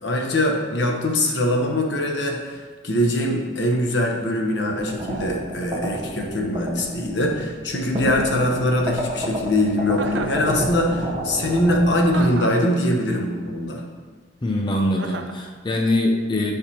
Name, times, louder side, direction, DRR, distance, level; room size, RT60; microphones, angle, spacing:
voice 1, 0.0-2.4 2.8-13.8, left 1 dB, 80° left, 1 dB, 1.1 m, -22 dB
sound 1, 4.7-12.3, right 1 dB, 25° right, 0.8 m, -30 dB
Chuckle chortle, 9.9-10.4 12.1-12.7 15.0-15.4, right 4 dB, 80° right, 0.5 m, -32 dB
voice 2, 14.4-16.6, left 1 dB, 25° left, 1 dB, 0.5 m, -23 dB
11.0 x 5.1 x 2.9 m, 1.5 s
head